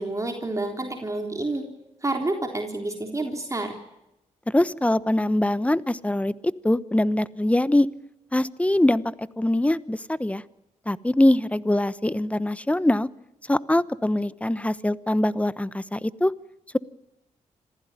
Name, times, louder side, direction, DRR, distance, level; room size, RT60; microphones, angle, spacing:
voice 1, 0.0-1.6 2.0-3.8, right 2 dB, 25° right, 3 dB, 3.7 m, -29 dB
voice 2, 4.5-6.3 6.6-7.9 8.3-10.4 10.9-13.1 13.5-16.3, left 1 dB, 10° left, 17 dB, 1.0 m, -23 dB
26.5 x 15.5 x 9.8 m, 0.91 s
cardioid pair, 65°, 13 cm